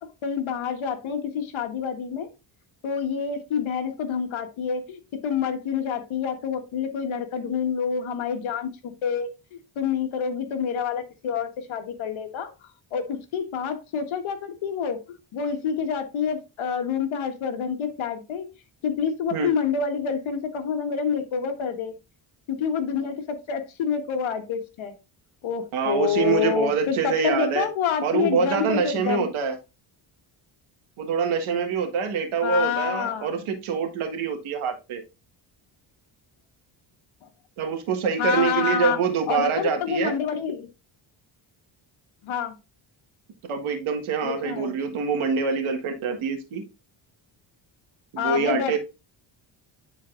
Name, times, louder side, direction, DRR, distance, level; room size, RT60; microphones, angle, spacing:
voice 1, 0.0-2.3 2.8-18.5 18.8-21.9 22.5-24.9 25.4-29.3 32.4-33.6 38.2-39.0 39.3-40.7 42.2-42.5 44.2-44.8 48.2-48.8, left 7 dB, 75° left, 7 dB, 1.4 m, -28 dB
voice 2, 25.7-27.7 28.0-29.6 31.0-35.0 37.6-40.2 43.5-46.6 48.1-48.8, right 5 dB, 85° right, 5 dB, 1.7 m, -25 dB
10.0 x 4.1 x 2.5 m, 0.27 s
cardioid pair, 100°, 48 cm